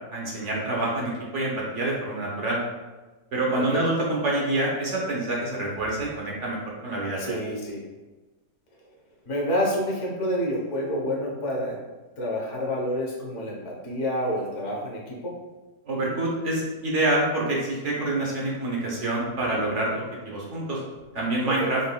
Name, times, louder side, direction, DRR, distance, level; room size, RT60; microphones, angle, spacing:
voice 1, 0.1-2.6 3.3-7.4 15.9-20.8 21.1-21.8, right 2 dB, 50° right, -3 dB, 1.0 m, -27 dB
voice 2, 3.5-3.8 7.2-7.8 9.3-11.7 12.2-15.3 21.6-21.7, equal, 45° left, -3 dB, 1.2 m, -28 dB
5.5 x 3.6 x 2.3 m, 1.2 s
omnidirectional pair, 1.9 m